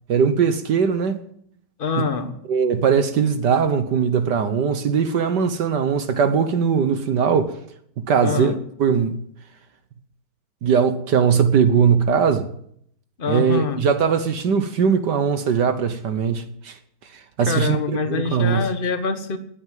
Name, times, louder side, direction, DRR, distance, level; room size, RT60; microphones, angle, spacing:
voice 1, 0.1-1.2 2.0-2.1 2.5-7.6 8.0-9.2 10.6-12.5 13.3-16.8 17.4-17.8 18.1-18.7, right 6 dB, 60° right, 1.5 m, -20 dB
voice 2, 1.8-2.4 8.2-8.6 13.2-13.8 17.5-19.4, left 5 dB, 30° left, 1.2 m, -25 dB
18.5 x 9.5 x 7.5 m
omnidirectional pair, 2.4 m